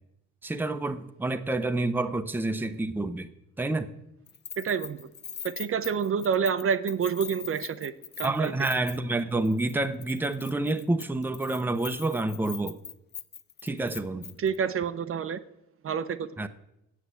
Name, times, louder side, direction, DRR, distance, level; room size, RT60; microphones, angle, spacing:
voice 1, 0.4-3.3 3.6-3.9 8.2-12.8 13.6-14.3 16.4-16.5, right 2 dB, 5° right, 0.6 m, -28 dB
Keys jangling, 4.3-9.2 9.4-9.7 10.0-14.6, left 8 dB, 35° left, 0.5 m, -42 dB
voice 2, 4.6-5.1 5.4-8.5 14.4-15.4 15.8-16.4, right 7 dB, 45° right, 0.6 m, -28 dB
8.0 x 7.3 x 8.2 m
cardioid pair, 90°, 30 cm